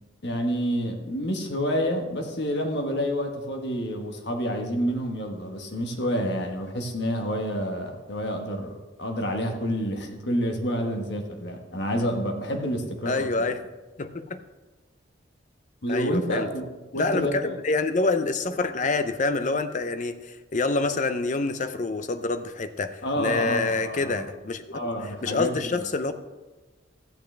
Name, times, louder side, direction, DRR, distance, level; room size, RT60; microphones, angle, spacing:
voice 1, 0.2-13.3 15.8-16.7 16.9-17.6 23.0-24.3 24.7-25.8, equal, 60° left, 3 dB, 1.4 m, -28 dB
voice 2, 13.1-13.6 14.0-14.4 15.9-16.5 16.9-24.6 25.0-26.1, left 3 dB, 40° left, 10 dB, 0.5 m, -27 dB
13.5 x 8.9 x 3.3 m, 1.2 s
head